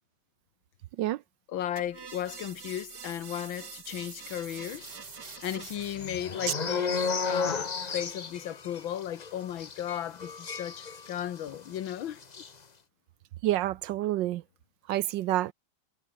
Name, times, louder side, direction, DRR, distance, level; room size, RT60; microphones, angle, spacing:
voice 1, 1.5-4.9 5.2-12.2, left 11 dB, 75° left, 1.8 m, -35 dB
sound 1, 1.8-6.2, right 7 dB, 55° right, 2.3 m, -45 dB
sound 2, 4.7-11.5 11.7-11.9 12.2-12.5, left 5 dB, 30° left, 0.8 m, -34 dB
voice 2, 13.4-14.4 14.9-15.5, right 14 dB, 75° right, 1.2 m, -28 dB
omnidirectional pair, 2.2 m